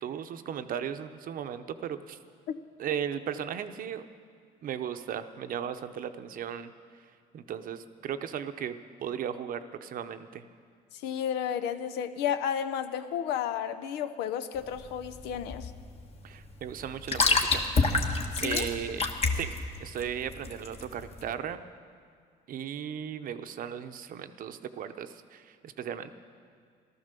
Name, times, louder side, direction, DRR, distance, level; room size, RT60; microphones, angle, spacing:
voice 1, 0.0-2.2 2.8-4.0 4.6-6.7 7.3-8.8 9.0-10.5 16.2-17.7 18.4-19.0 19.3-19.5 19.8-21.6 22.5-26.1, right 8 dB, 55° right, 10 dB, 0.7 m, -36 dB
voice 2, 10.9-15.7 18.3-18.7, left 9 dB, 90° left, 11 dB, 0.7 m, -32 dB
sound 1, 14.5-21.3, left 3 dB, 35° left, 1.3 m, -29 dB
15.0 x 12.5 x 6.8 m, 2.1 s
cardioid pair, 110°, 17 cm